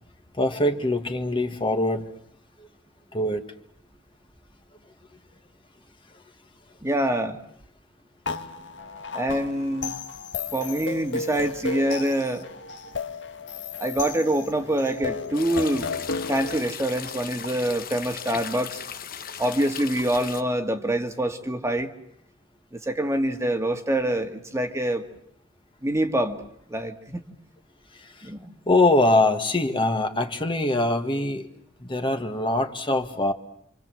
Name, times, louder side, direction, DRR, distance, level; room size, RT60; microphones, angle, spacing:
voice 1, 0.3-2.2 2.6-2.7 3.1-3.4 27.9-28.3 28.7-31.5 31.8-33.3, left 2 dB, 25° left, 5 dB, 1.9 m, -23 dB
voice 2, 6.8-7.4 9.1-9.9 10.5-12.5 13.8-15.9 16.3-18.8 19.4-21.9 22.7-25.0 25.8-26.4 26.7-27.2 28.2-28.6, right 1 dB, 15° right, 5 dB, 1.9 m, -25 dB
sound 1, 8.3-16.6, left 4 dB, 70° left, 1.8 m, -34 dB
sound 2, 15.3-20.4, left 8 dB, 50° left, 1.2 m, -37 dB
28.5 x 26.0 x 7.7 m, 0.69 s
head